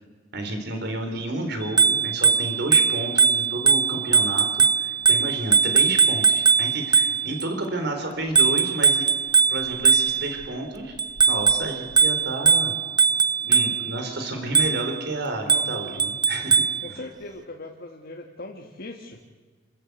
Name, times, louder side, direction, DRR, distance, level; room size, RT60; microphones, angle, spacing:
voice 1, 0.3-9.0 9.5-11.0 11.3-12.7 13.5-16.6 16.9-17.0, right 2 dB, 60° right, 5 dB, 4.0 m, -31 dB
Bicycle bell, 1.6-7.5 8.3-10.4 11.0-14.0 14.5-15.0 15.5-16.8, right 5 dB, 20° right, 0.5 m, -20 dB
voice 2, 16.8-19.2, left 2 dB, 55° left, 1 dB, 1.7 m, -39 dB
28.0 x 13.5 x 8.2 m, 1.4 s
head